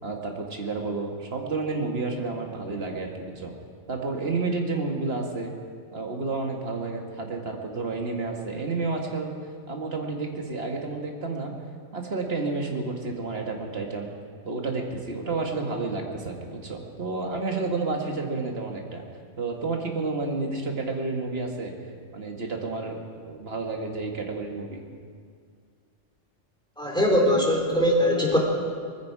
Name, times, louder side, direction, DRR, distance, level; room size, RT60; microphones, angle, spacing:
voice 1, 0.0-3.5 3.9-5.5 5.9-9.3 9.7-11.5 11.9-14.1 14.4-19.1 19.4-21.7 22.1-24.8, right 3 dB, 50° right, 2 dB, 2.1 m, -30 dB
voice 2, 26.8-28.4, equal, 5° left, -2 dB, 3.3 m, -21 dB
20.0 x 15.0 x 4.8 m, 2.1 s
omnidirectional pair, 1.3 m